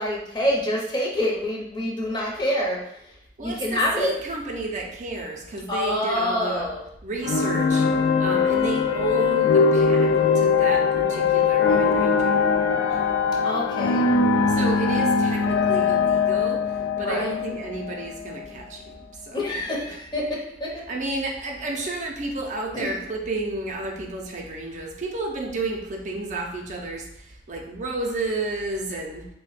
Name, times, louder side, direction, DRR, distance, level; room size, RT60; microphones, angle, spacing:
voice 1, 0.0-2.8 3.4-4.1 5.7-6.8 13.4-14.0 17.0-17.3 19.3-20.8 22.7-23.0, left 1 dB, 25° left, -3 dB, 0.7 m, -26 dB
voice 2, 3.4-6.7 7.0-7.9 8.2-12.4 12.9-13.0 14.5-19.5 19.8-20.0 20.9-29.3, right 2 dB, 45° right, 0 dB, 0.5 m, -31 dB
sound 1, 7.2-18.5, left 5 dB, 85° left, 0.3 m, -21 dB
3.2 x 2.1 x 4.0 m, 0.79 s
head